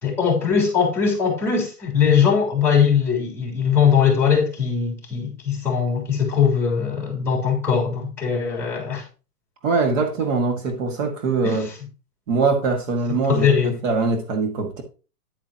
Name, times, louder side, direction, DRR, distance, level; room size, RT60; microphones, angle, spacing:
voice 1, 0.0-9.0 11.4-11.7 13.3-13.7, left 7 dB, 5° left, 3.4 m, -20 dB
voice 2, 9.6-11.7 12.3-14.8, right 4 dB, 55° right, 2.0 m, -22 dB
10.5 x 9.0 x 2.9 m
hypercardioid pair, 150°, 47 cm